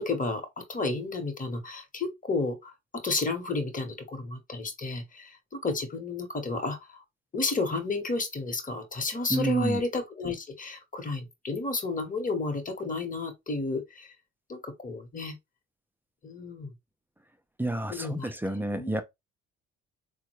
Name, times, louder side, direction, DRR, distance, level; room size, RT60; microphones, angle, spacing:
voice 1, 0.0-7.0 7.3-14.1 14.5-15.4 16.2-16.7 17.9-18.3 18.7-19.0, left 3 dB, 25° left, 1.1 m, -32 dB
voice 2, 9.3-9.8 17.6-19.0, right 1 dB, 5° right, 0.5 m, -29 dB
3.7 x 2.2 x 3.0 m
supercardioid pair, 65°, 31 cm